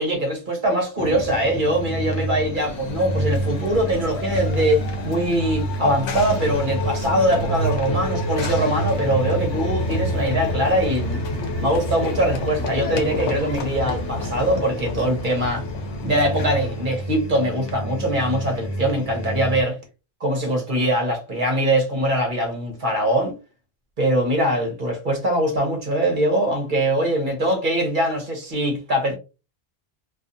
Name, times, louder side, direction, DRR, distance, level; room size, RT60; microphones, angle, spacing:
voice 1, 0.0-11.2 11.6-15.6 16.0-19.8 20.2-23.3 24.0-29.1, right 1 dB, 50° right, 0.9 m, -22 dB
sound 1, 1.0-19.6, right 1 dB, 35° left, 0.4 m, -28 dB
Run / Train, 2.5-17.0, left 3 dB, 85° left, 1.0 m, -32 dB
2.5 x 2.4 x 2.5 m
omnidirectional pair, 1.1 m